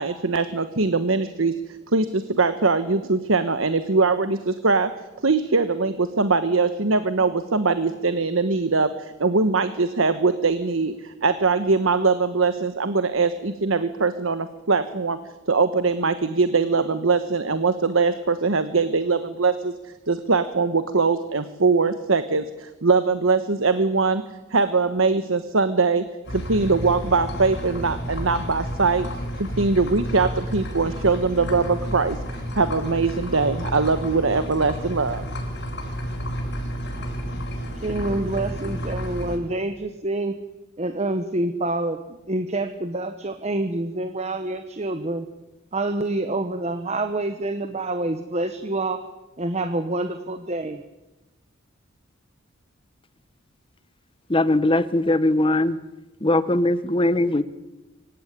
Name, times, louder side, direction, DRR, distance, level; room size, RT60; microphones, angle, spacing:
voice 1, 0.0-1.5 1.9-4.9 5.2-15.2 15.5-24.2 24.5-29.1 29.4-32.2 32.5-35.3, right 4 dB, 75° right, 11 dB, 1.2 m, -22 dB
sound 1, 26.2-39.4, equal, 60° left, 6.8 m, -31 dB
voice 2, 37.8-40.3 40.8-45.3 45.7-49.0 49.4-50.8, right 2 dB, 30° right, 8 dB, 1.1 m, -27 dB
voice 3, 54.3-55.8 56.2-57.4, left 1 dB, 25° left, 15 dB, 1.0 m, -20 dB
25.0 x 16.0 x 9.9 m, 1.1 s
head